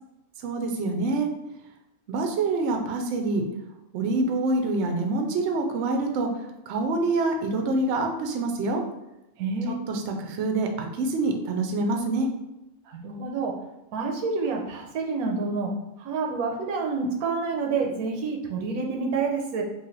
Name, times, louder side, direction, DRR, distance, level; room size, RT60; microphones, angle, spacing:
voice 1, 0.4-1.3 2.1-3.5 3.9-6.3 6.7-8.8 9.7-12.3, right 2 dB, 65° right, 3 dB, 0.8 m, -26 dB
voice 2, 9.4-9.8 12.9-13.5 13.9-15.7 16.0-19.6, right 4 dB, 85° right, 2 dB, 1.1 m, -28 dB
3.1 x 2.5 x 3.9 m, 0.90 s
omnidirectional pair, 1.5 m